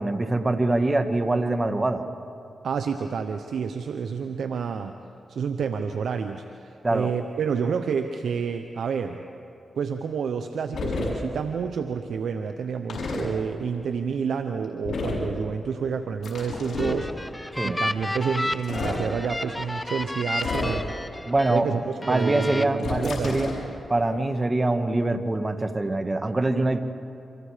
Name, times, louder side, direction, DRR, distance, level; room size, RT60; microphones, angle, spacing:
voice 1, 0.0-2.0 6.8-7.1 17.5-17.8 21.3-21.7 22.1-23.6 23.9-26.8, right 2 dB, 30° right, 8 dB, 1.8 m, -24 dB
voice 2, 2.6-5.0 5.3-9.2 9.8-17.4 17.6-21.0 21.5-23.4, right 6 dB, 80° right, 7 dB, 0.9 m, -29 dB
sound 1, 10.7-11.1 12.9-13.2 14.8-15.3 16.2-17.0 18.5-19.0 20.4-20.9 22.8-23.6, left 3 dB, 70° left, 6.4 m, -30 dB
sound 2, 16.5-21.6 22.0-22.6, left 1 dB, 15° left, 1.3 m, -32 dB
29.5 x 25.5 x 5.1 m, 2.6 s
supercardioid pair, 50°, 0 cm